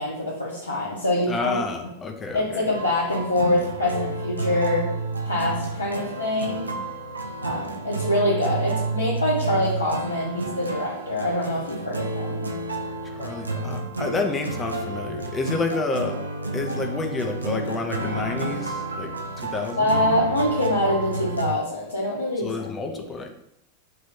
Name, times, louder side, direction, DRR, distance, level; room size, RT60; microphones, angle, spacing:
voice 1, 0.0-1.6 2.3-4.9 5.2-6.7 7.4-12.4 19.8-22.7 22.9-23.0, left 1 dB, 80° left, -7 dB, 0.6 m, -25 dB
voice 2, 1.3-2.7 13.0-16.2 16.5-20.2 22.4-23.3, left 3 dB, 20° left, 4 dB, 0.5 m, -29 dB
sound 1, 2.7-21.5, right 2 dB, 80° right, 0.3 m, -30 dB
2.6 x 2.5 x 3.5 m, 0.79 s
figure-of-eight pair, 90°, 0 cm